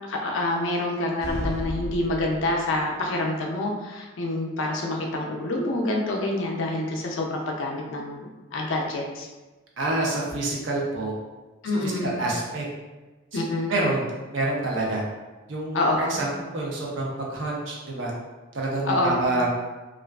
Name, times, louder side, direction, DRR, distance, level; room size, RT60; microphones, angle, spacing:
voice 1, 0.1-9.3 11.6-12.2 13.3-13.8 15.7-16.2 18.9-19.3, left 2 dB, 70° left, 0 dB, 0.4 m, -27 dB
sound 1, 1.2-2.9, equal, 15° right, 0.5 m, -33 dB
voice 2, 9.8-11.1 11.7-12.6 13.3-13.4 13.7-15.0 15.5-18.1 18.5-19.5, right 2 dB, 70° right, -3 dB, 0.6 m, -27 dB
2.4 x 2.3 x 2.2 m, 1.2 s
head